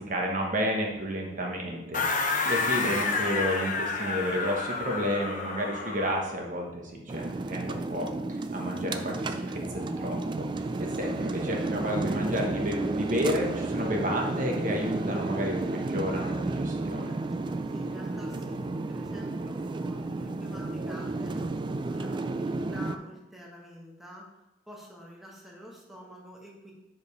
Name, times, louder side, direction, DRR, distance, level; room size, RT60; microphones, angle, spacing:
voice 1, 0.0-10.2 10.6-17.1, equal, 45° right, 0 dB, 1.1 m, -31 dB
sound 1, 1.9-6.3, left 4 dB, 45° left, 0.8 m, -30 dB
sound 2, 7.1-23.0, right 2 dB, 25° right, 0.3 m, -32 dB
voice 2, 17.7-21.5 21.8-24.3 24.7-26.7, equal, ahead, -3 dB, 1.1 m, -47 dB
5.2 x 4.8 x 5.3 m, 0.96 s
head